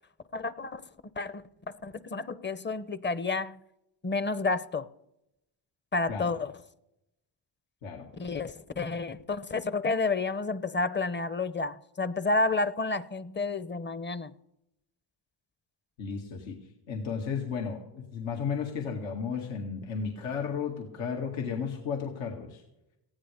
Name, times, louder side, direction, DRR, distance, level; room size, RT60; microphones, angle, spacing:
voice 1, 0.3-0.8 1.2-1.4 1.8-3.6 4.0-4.9 5.9-6.5 8.1-14.3, left 3 dB, 25° left, 0.7 m, -30 dB
voice 2, 16.0-16.6 16.9-22.6, left 6 dB, 85° left, 2.2 m, -34 dB
18.5 x 15.5 x 3.4 m
cardioid pair, 80°, 45 cm